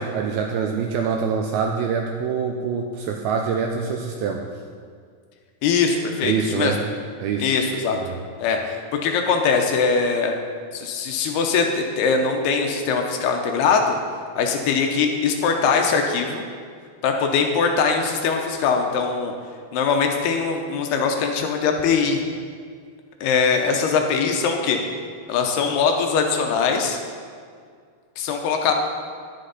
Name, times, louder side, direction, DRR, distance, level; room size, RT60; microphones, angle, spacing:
voice 1, 0.0-4.4 6.2-6.8 7.2-7.5 7.9-8.2, right 6 dB, 85° right, 3 dB, 2.2 m, -25 dB
voice 2, 5.6-6.8 7.4-8.0 8.4-8.8 9.0-10.3 10.7-14.0 14.4-16.4 17.0-19.3 19.7-22.2 23.2-24.8 25.3-27.0 28.2-28.7, left 5 dB, 80° left, 3 dB, 2.7 m, -21 dB
10.5 x 10.5 x 4.1 m, 2.1 s
omnidirectional pair, 4.9 m